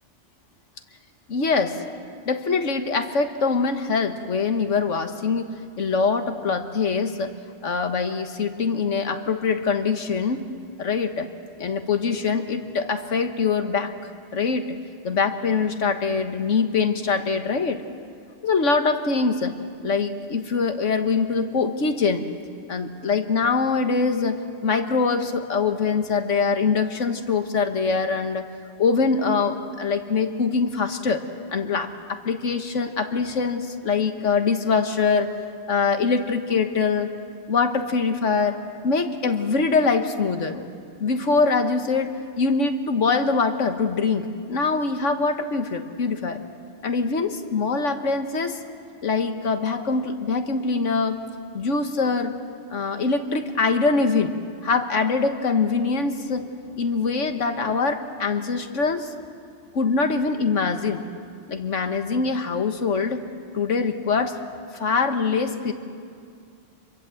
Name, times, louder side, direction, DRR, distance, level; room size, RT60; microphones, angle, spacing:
voice 1, 1.3-1.8 2.3-7.3 7.6-10.4 10.8-11.3 11.6-13.9 14.3-14.8 15.0-17.8 18.4-19.6 19.8-22.3 22.7-28.5 28.8-31.2 31.5-35.3 35.7-37.1 37.5-40.7 41.0-46.4 46.8-48.6 49.0-51.2 51.5-52.4 52.7-54.3 54.6-59.1 59.7-61.0 61.5-63.2 63.5-64.4 64.7-65.7, left 4 dB, 80° left, 7 dB, 1.7 m, -23 dB
27.5 x 23.0 x 7.8 m, 2.2 s
omnidirectional pair, 1.3 m